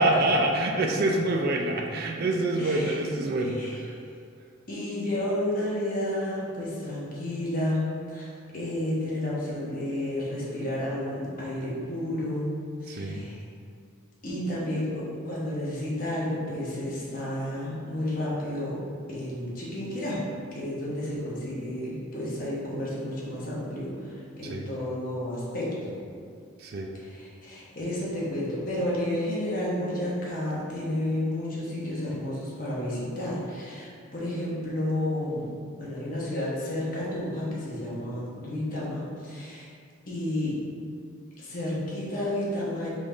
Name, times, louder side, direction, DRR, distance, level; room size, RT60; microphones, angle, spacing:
voice 1, 0.0-3.9 12.9-13.3 24.4-24.7 26.6-26.9, right 1 dB, 45° right, 2 dB, 0.4 m, -26 dB
voice 2, 2.6-3.0 3.4-3.8 4.7-12.5 12.8-13.4 14.2-18.8 19.1-20.2 20.5-25.9 26.9-35.5 35.8-39.7 40.1-40.5 41.4-42.9, left 1 dB, 40° left, -7 dB, 1.1 m, -31 dB
3.9 x 3.5 x 3.8 m, 2.3 s
head